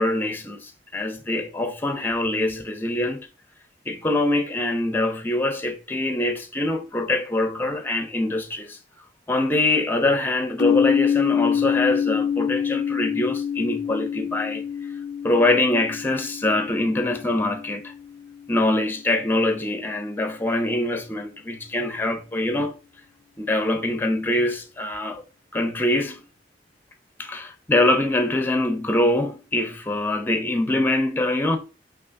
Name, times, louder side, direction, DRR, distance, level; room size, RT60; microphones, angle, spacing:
voice 1, 0.0-3.3 3.9-8.8 9.3-14.6 15.2-17.9 18.5-22.8 23.4-25.2 25.5-26.2 27.2-31.6, left 1 dB, 10° left, 0.6 m, -24 dB
sound 1, 10.6-18.4, left 8 dB, 75° left, 0.3 m, -26 dB
6.1 x 2.8 x 2.6 m
head